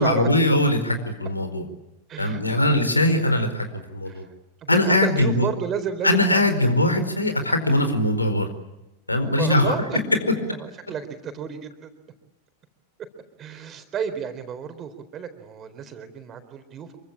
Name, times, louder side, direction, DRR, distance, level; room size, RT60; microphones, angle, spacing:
voice 1, 0.0-1.6 2.2-4.3 4.7-5.5 6.0-8.5 9.1-9.8, left 1 dB, 85° left, 8 dB, 4.5 m, -21 dB
voice 2, 2.1-3.2 4.1-4.2 4.6-6.4 9.4-10.0 10.5-11.9 13.4-17.0, right 7 dB, 30° right, 9 dB, 4.1 m, -32 dB
27.5 x 24.0 x 8.7 m, 0.93 s
figure-of-eight pair, 90°, 0 cm